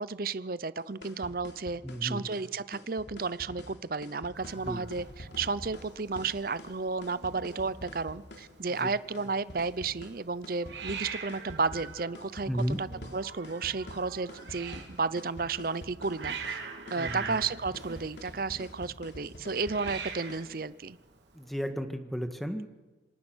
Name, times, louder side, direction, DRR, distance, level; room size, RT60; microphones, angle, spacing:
voice 1, 0.0-16.6 16.9-21.0, right 4 dB, 50° right, 17 dB, 0.7 m, -33 dB
sound 1, 0.8-20.5, left 1 dB, 75° left, 3.2 m, -47 dB
voice 2, 1.8-2.3 4.7-4.8 8.8-8.9 12.5-12.8 17.0-17.4 21.4-22.7, equal, ahead, 7 dB, 1.9 m, -33 dB
Hiss, 4.3-21.7, right 5 dB, 80° right, 3.4 m, -44 dB
27.0 x 26.0 x 6.3 m, 1.2 s
head